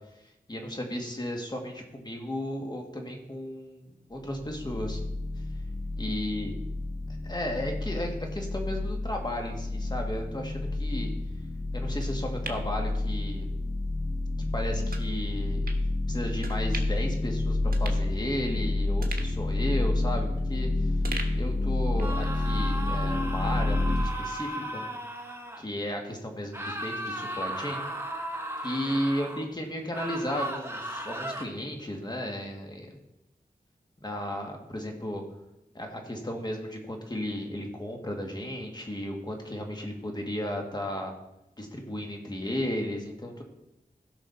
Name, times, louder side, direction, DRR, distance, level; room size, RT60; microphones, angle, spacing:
voice 1, 0.5-5.0 6.0-6.5 7.2-11.1 11.7-13.5 14.5-15.7 16.1-20.9 21.3-24.9 25.6-27.8 28.6-32.9 34.0-35.2 35.7-41.1 41.6-43.4, left 1 dB, 25° left, 2 dB, 2.0 m, -34 dB
sound 1, 4.1-24.0, left 2 dB, 65° left, 1.9 m, -29 dB
sound 2, 12.0-13.6 14.0-14.1 14.9-15.1 15.7-15.8 16.4-17.1 17.4-17.5 17.7-18.6 19.0-20.6 21.0-22.2 22.5-22.6, right 3 dB, 70° right, 1.3 m, -42 dB
sound 3, 22.0-25.6 26.5-29.5 29.9-31.4, right 1 dB, 15° right, 1.3 m, -36 dB
16.0 x 5.9 x 4.2 m, 0.88 s
wide cardioid pair, 85°, 16 cm